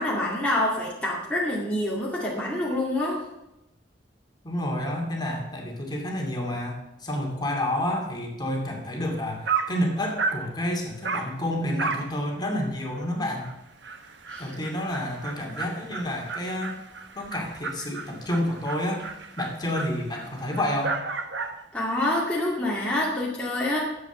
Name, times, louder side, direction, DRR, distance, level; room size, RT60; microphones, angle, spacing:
voice 1, 0.0-3.2 14.3-14.5 21.7-23.8, left 1 dB, 5° left, -5 dB, 2.1 m, -26 dB
voice 2, 4.4-13.5 14.4-16.7 17.1-19.0 19.4-21.0, left 1 dB, 20° left, 0 dB, 2.5 m, -29 dB
Dog, 9.1-9.2 9.4-9.8 10.2-10.5 11.0-11.3 11.8-12.1 12.5-12.6 13.0-13.1 13.4-13.5 13.8-21.6, right 4 dB, 70° right, 1.3 m, -33 dB
11.5 x 7.9 x 7.1 m, 0.91 s
head